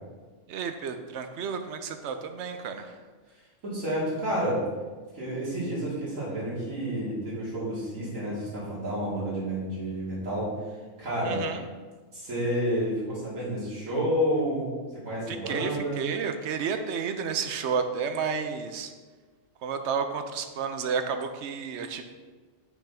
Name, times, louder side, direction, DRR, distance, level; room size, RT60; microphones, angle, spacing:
voice 1, 0.5-2.9 11.2-11.6 15.3-18.9 19.6-22.0, right 6 dB, 65° right, 7 dB, 0.8 m, -31 dB
voice 2, 3.6-4.6 5.1-10.5 11.0-11.4 12.1-14.7 15.0-16.0, equal, 90° right, -8 dB, 2.7 m, -30 dB
6.0 x 3.5 x 5.7 m, 1.4 s
omnidirectional pair, 1.3 m